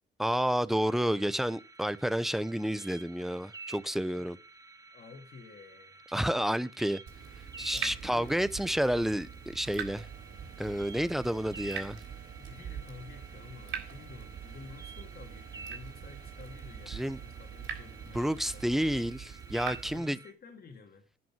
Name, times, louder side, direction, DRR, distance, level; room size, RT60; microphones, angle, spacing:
voice 1, 0.2-4.4 6.1-7.0 7.6-10.1 10.6-12.0 16.9-17.2 18.1-20.2, equal, ahead, 0.7 m, -30 dB
sound 1, 0.7-20.3, right 3 dB, 20° right, 1.1 m, -51 dB
voice 2, 4.9-6.1 7.7-8.4 12.4-18.6 19.9-21.1, left 4 dB, 50° left, 2.3 m, -51 dB
Water tap faucet / Drip, 7.1-20.0, right 7 dB, 80° right, 3.7 m, -43 dB
sound 2, 9.9-19.0, right 8 dB, 45° right, 2.4 m, -52 dB
11.0 x 6.0 x 7.4 m
cardioid pair, 90°, 20 cm